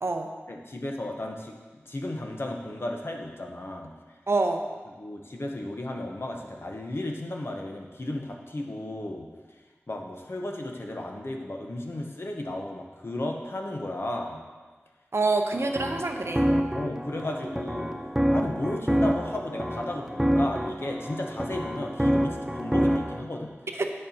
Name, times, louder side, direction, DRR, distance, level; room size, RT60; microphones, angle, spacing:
voice 1, 0.5-3.9 5.0-9.3 9.9-14.4 16.7-18.0 18.3-23.5, left 1 dB, 55° left, 1 dB, 0.9 m, -34 dB
voice 2, 4.3-4.6 15.1-16.4 23.7-23.9, right 3 dB, 65° right, 4 dB, 0.6 m, -26 dB
sound 1, 15.5-23.2, equal, 10° right, 0.5 m, -27 dB
8.8 x 6.4 x 2.8 m, 1.4 s
wide cardioid pair, 50°, 5 cm